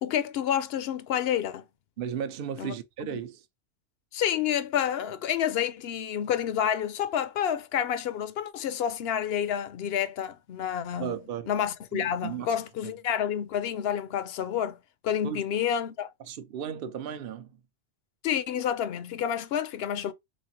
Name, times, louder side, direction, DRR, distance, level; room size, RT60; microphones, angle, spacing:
voice 1, 0.0-1.6 2.6-2.7 3.1-3.2 4.1-11.1 11.5-14.8 15.0-16.1 18.2-20.1, left 9 dB, 65° left, 0.7 m, -29 dB
voice 2, 2.0-3.4 11.0-11.5 11.9-12.6 12.8-12.9 15.2-15.4 16.2-17.5, right 9 dB, 60° right, 0.7 m, -35 dB
4.0 x 3.2 x 2.7 m
omnidirectional pair, 1.2 m